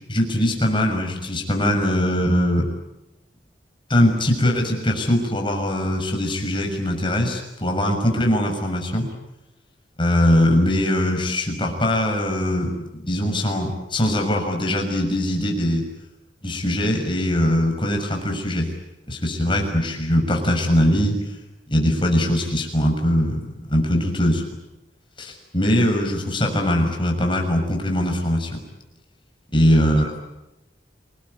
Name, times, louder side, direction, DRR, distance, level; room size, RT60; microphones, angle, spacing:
voice 1, 0.1-2.7 3.9-9.1 10.0-15.9 16.4-18.7 19.1-21.2 21.7-24.4 25.2-28.6 29.5-30.1, left 1 dB, 30° left, 2 dB, 6.5 m, -21 dB
28.5 x 20.0 x 9.9 m, 0.95 s
head